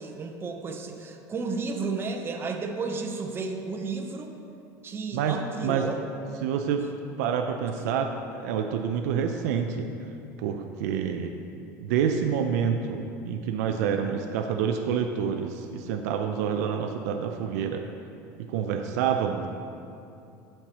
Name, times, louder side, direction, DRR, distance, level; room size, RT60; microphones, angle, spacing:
voice 1, 0.0-4.3 4.8-6.0, right 4 dB, 25° right, 4 dB, 0.7 m, -32 dB
voice 2, 5.1-5.8 6.4-6.9 7.2-9.9 10.4-11.3 11.8-17.8 18.5-19.5, right 7 dB, 85° right, 4 dB, 0.5 m, -27 dB
13.5 x 4.6 x 3.0 m, 2.7 s
supercardioid pair, 115°, 9 cm